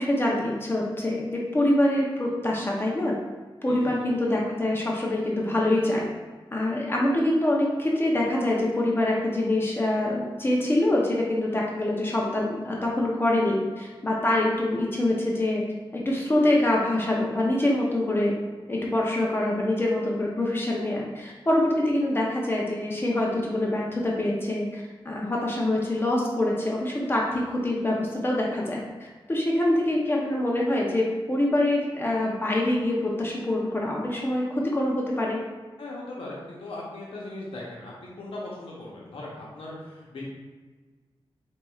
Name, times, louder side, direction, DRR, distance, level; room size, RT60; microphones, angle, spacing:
voice 1, 0.0-3.1 3.6-6.1 6.5-15.6 15.9-18.4 18.7-28.8 29.3-35.4, left 1 dB, 25° left, -3 dB, 0.6 m, -25 dB
voice 2, 3.7-4.1 17.9-18.0 35.8-40.3, left 2 dB, 85° left, -4 dB, 0.9 m, -39 dB
4.5 x 4.1 x 2.3 m, 1.4 s
wide cardioid pair, 135°, 9 cm